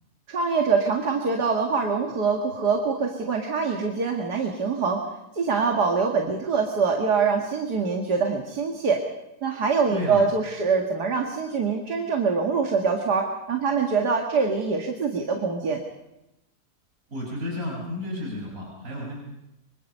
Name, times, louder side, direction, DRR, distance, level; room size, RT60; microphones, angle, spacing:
voice 1, 0.3-5.0 5.3-9.0 9.4-15.8, right 5 dB, 80° right, 2 dB, 2.6 m, -24 dB
voice 2, 17.1-19.1, left 1 dB, 55° right, -3 dB, 6.3 m, -32 dB
25.5 x 25.5 x 5.5 m, 0.91 s
omnidirectional pair, 1.7 m